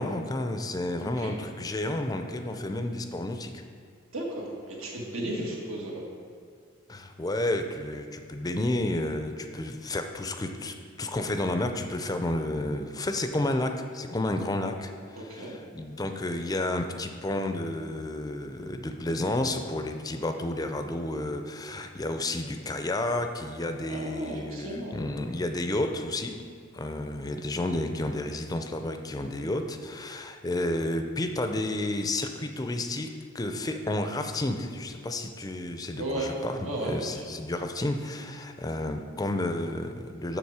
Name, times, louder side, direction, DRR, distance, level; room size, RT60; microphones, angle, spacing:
voice 1, 0.0-3.6 6.9-26.4 26.7-33.1 33.3-40.4, left 1 dB, 20° left, 6 dB, 0.5 m, -31 dB
voice 2, 4.1-6.0 15.2-15.5 23.9-24.9 36.0-36.3 36.6-37.2, right 1 dB, 85° right, -2 dB, 1.7 m, -34 dB
7.1 x 6.6 x 4.8 m, 2.1 s
head